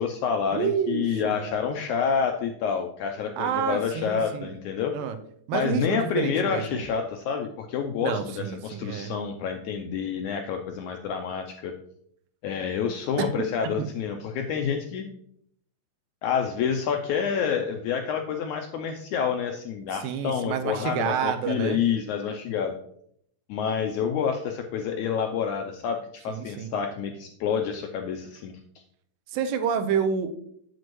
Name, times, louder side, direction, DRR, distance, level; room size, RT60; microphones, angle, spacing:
voice 1, 0.0-4.9 5.5-11.7 12.4-15.1 16.2-22.7 23.5-28.5, left 7 dB, 85° left, 4 dB, 1.7 m, -28 dB
voice 2, 0.5-1.4 3.4-4.5 4.9-5.2 5.5-6.9 8.0-9.1 13.2-13.3 13.8-13.9 20.0-21.8 26.3-26.8 29.3-30.3, right 7 dB, 85° right, 8 dB, 2.4 m, -28 dB
8.0 x 7.8 x 3.1 m, 0.69 s
omnidirectional pair, 4.0 m